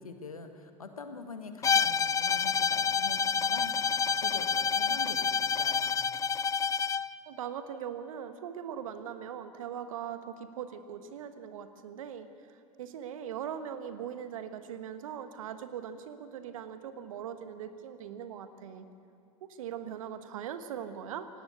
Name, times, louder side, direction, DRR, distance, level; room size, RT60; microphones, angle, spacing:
voice 1, 0.0-3.9 4.2-6.0, left 4 dB, 85° left, 7 dB, 1.7 m, -45 dB
Bowed string instrument, 1.6-7.1, left 6 dB, 20° left, 0.4 m, -28 dB
voice 2, 7.2-18.9 19.4-21.3, right 8 dB, 70° right, 10 dB, 1.4 m, -40 dB
19.0 x 16.5 x 8.5 m, 2.8 s
figure-of-eight pair, 75°, 18 cm